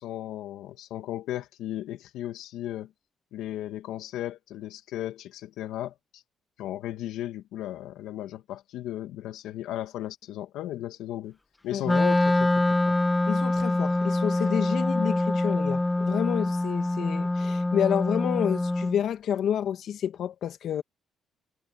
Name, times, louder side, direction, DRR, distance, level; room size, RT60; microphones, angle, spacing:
voice 1, 0.0-2.9 3.3-6.2 6.6-11.4 11.6-13.0, left 13 dB, 90° left, 2.5 m, -36 dB
Wind instrument woodwind instrument, 11.8-19.0, left 2 dB, 15° left, 1.7 m, -25 dB
voice 2, 13.3-20.8, left 9 dB, 70° left, 2.5 m, -29 dB
cardioid pair, 90°, 0 cm